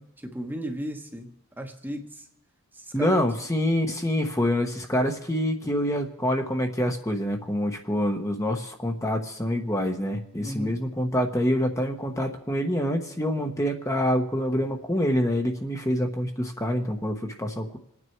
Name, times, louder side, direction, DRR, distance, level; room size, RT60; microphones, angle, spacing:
voice 1, 0.0-2.2 2.7-3.3 10.4-10.8, equal, 10° right, 4 dB, 1.2 m, -36 dB
voice 2, 2.9-17.8, equal, 15° left, 3 dB, 1.1 m, -26 dB
27.0 x 9.5 x 4.6 m, 0.76 s
head